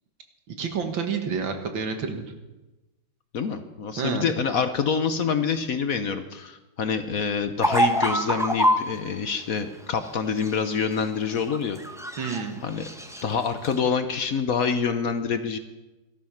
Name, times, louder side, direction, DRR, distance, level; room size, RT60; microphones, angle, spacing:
voice 1, 0.5-2.2 4.0-4.3 12.2-12.6, right 5 dB, 80° right, 6 dB, 2.3 m, -29 dB
voice 2, 3.3-11.8 12.6-12.9 13.2-15.6, left 6 dB, 55° left, 9 dB, 1.2 m, -26 dB
sound 1, 7.6-8.9 10.3-11.0 11.4-12.5 12.7-13.2 13.6-13.8, equal, 5° right, 0.5 m, -25 dB
17.5 x 13.0 x 5.8 m, 1.1 s
omnidirectional pair, 2.1 m